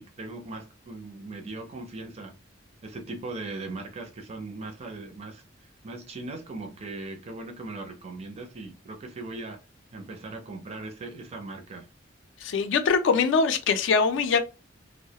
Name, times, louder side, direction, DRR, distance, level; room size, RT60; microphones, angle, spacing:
voice 1, 0.0-2.3 2.8-9.6 9.9-11.9, right 2 dB, 30° right, 0.4 m, -39 dB
voice 2, 12.4-14.4, left 5 dB, 70° left, 0.3 m, -23 dB
2.2 x 2.0 x 2.7 m
head